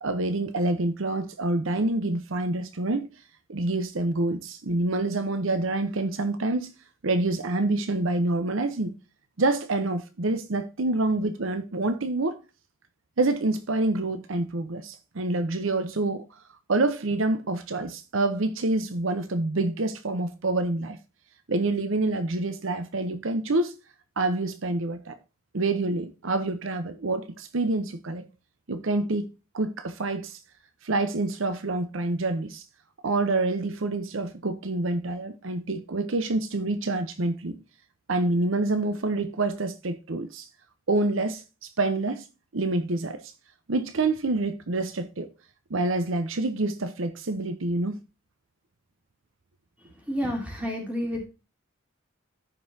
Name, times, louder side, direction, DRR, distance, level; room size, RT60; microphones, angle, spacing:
voice 1, 0.0-3.1 3.5-6.7 7.0-8.9 9.4-12.4 13.2-16.3 16.7-21.0 21.5-23.7 24.2-25.2 25.5-28.2 28.7-29.3 29.5-30.4 30.8-32.6 33.0-37.6 38.1-40.5 40.9-42.2 42.5-43.3 43.7-45.3 45.7-48.0, right 2 dB, 65° right, 0.8 m, -27 dB
voice 2, 50.1-51.2, equal, 5° right, 3.0 m, -29 dB
14.0 x 5.4 x 2.7 m
head